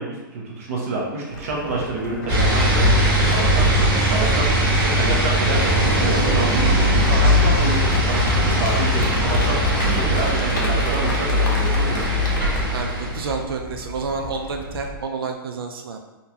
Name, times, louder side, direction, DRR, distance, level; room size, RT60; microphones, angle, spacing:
voice 1, 0.0-12.2, right 2 dB, 40° right, -3 dB, 0.6 m, -28 dB
sound 1, 1.3-14.9, left 1 dB, 55° left, 0.6 m, -34 dB
sound 2, 2.3-13.4, equal, 20° right, 1.1 m, -19 dB
Train / Subway metro underground, 5.5-15.0, right 1 dB, ahead, 0.4 m, -31 dB
voice 2, 12.7-16.0, right 4 dB, 75° right, 3 dB, 0.4 m, -29 dB
3.7 x 2.2 x 2.8 m, 1.1 s
hypercardioid pair, 175°, 12 cm